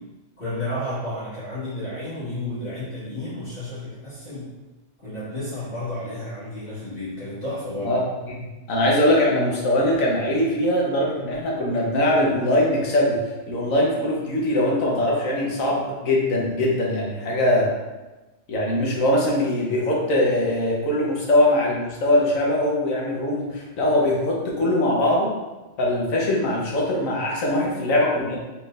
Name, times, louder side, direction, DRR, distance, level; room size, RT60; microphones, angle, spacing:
voice 1, 0.4-4.5 5.0-8.0, left 1 dB, 50° left, -14 dB, 1.8 m, -32 dB
voice 2, 7.8-8.3 8.7-17.7 18.5-25.3 25.8-28.4, left 1 dB, 85° left, -3 dB, 1.4 m, -21 dB
4.3 x 3.7 x 2.5 m, 1.1 s
omnidirectional pair, 1.4 m